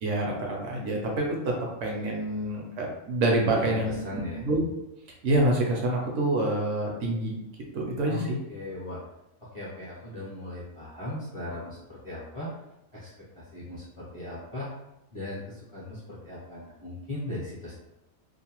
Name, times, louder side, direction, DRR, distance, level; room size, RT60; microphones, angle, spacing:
voice 1, 0.0-1.5 1.8-4.6 5.2-7.4 7.7-8.4, right 1 dB, 70° right, -1 dB, 0.9 m, -27 dB
voice 2, 3.4-4.4 8.1-8.2 8.5-9.0 9.4-12.5 12.9-13.1 13.3-14.7 15.1-17.7, left 1 dB, 35° left, -8 dB, 0.5 m, -38 dB
2.6 x 2.1 x 2.8 m, 0.89 s
omnidirectional pair, 1.4 m